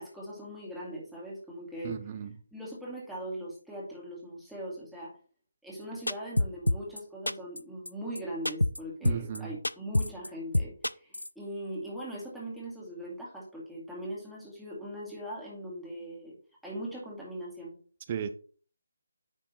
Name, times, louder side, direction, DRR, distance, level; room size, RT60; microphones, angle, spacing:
voice 1, 0.0-2.0 2.5-5.1 5.6-16.4 16.6-17.8, equal, ahead, 2.1 m, -40 dB
voice 2, 1.8-2.3 9.0-9.6 18.1-18.3, right 8 dB, 30° right, 0.6 m, -35 dB
sound 1, 6.1-7.0 7.3-7.6 7.9-8.0 8.2-8.3 8.5-8.8 9.1-9.4 9.6-10.3 10.5-11.3, left 1 dB, 80° left, 0.4 m, -26 dB
9.9 x 3.7 x 4.2 m
figure-of-eight pair, 150°, 0 cm